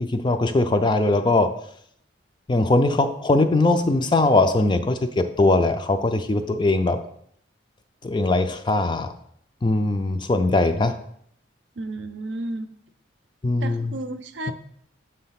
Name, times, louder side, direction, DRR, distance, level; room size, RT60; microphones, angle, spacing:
voice 1, 0.0-1.5 2.5-7.0 8.0-9.1 9.6-11.0 13.4-14.0, left 2 dB, 25° left, 8 dB, 0.4 m, -21 dB
voice 2, 11.8-12.7 13.6-14.5, right 2 dB, 60° right, 9 dB, 0.5 m, -32 dB
7.6 x 3.3 x 5.7 m, 0.68 s
head